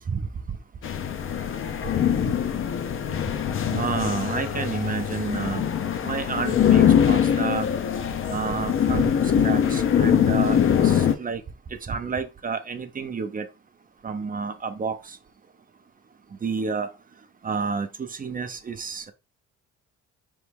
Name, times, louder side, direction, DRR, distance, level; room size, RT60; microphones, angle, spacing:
sound 1, 0.8-11.1, left 9 dB, 45° left, 0.6 m, -22 dB
voice 1, 3.7-5.6 6.0-7.7 8.3-9.1 9.4-10.6 10.8-11.4 11.9-13.5 14.0-15.2 16.4-16.9 17.4-19.1, right 5 dB, 30° right, 0.5 m, -29 dB
4.0 x 3.1 x 3.4 m
cardioid pair, 90°, 30 cm